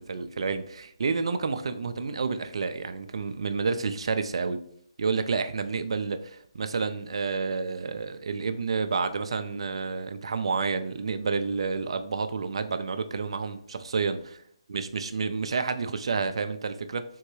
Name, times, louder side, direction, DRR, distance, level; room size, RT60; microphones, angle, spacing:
voice 1, 0.0-4.6 5.0-14.2 14.7-17.0, right 4 dB, 60° right, 9 dB, 0.3 m, -29 dB
3.7 x 2.2 x 3.1 m, 0.63 s
figure-of-eight pair, 145°, 3 cm